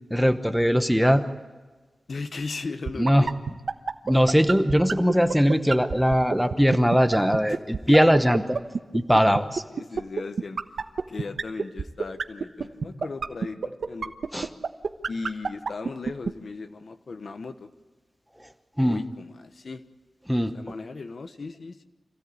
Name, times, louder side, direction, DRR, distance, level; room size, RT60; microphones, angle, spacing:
voice 1, 0.1-1.2 3.0-3.3 4.0-8.4 8.9-9.6 14.3-14.5 18.8-19.0 20.3-20.5, equal, ahead, 8 dB, 1.0 m, -20 dB
voice 2, 2.1-3.3 5.1-5.3 7.5-7.6 7.9-8.1 9.7-10.6 11.1-14.1 15.1-17.7 18.8-19.8 20.4-21.8, left 4 dB, 55° left, 10 dB, 1.1 m, -37 dB
sound 1, 2.9-16.3, right 5 dB, 70° right, 1.1 m, -26 dB
26.5 x 16.0 x 8.5 m, 1.3 s
wide cardioid pair, 135°, 0 cm